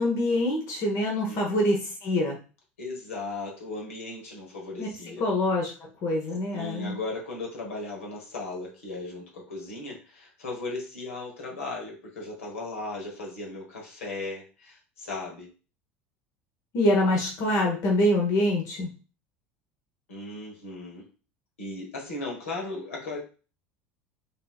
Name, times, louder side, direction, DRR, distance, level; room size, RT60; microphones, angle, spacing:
voice 1, 0.0-2.4 4.8-4.9 5.2-7.0 16.7-18.9, left 1 dB, 50° left, 0 dB, 1.1 m, -25 dB
voice 2, 1.3-1.7 2.8-5.2 6.5-15.5 20.1-21.1 21.6-23.2, left 2 dB, 80° left, -1 dB, 1.5 m, -37 dB
5.2 x 2.9 x 2.4 m, 0.34 s
hypercardioid pair, 75°, 7 cm